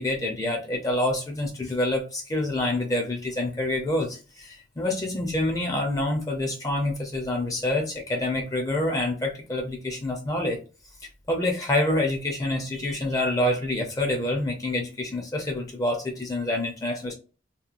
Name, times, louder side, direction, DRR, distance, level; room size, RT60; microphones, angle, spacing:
voice 1, 0.0-10.6 11.3-17.1, left 1 dB, 20° left, 2 dB, 0.4 m, -27 dB
2.8 x 2.1 x 2.4 m, 0.34 s
head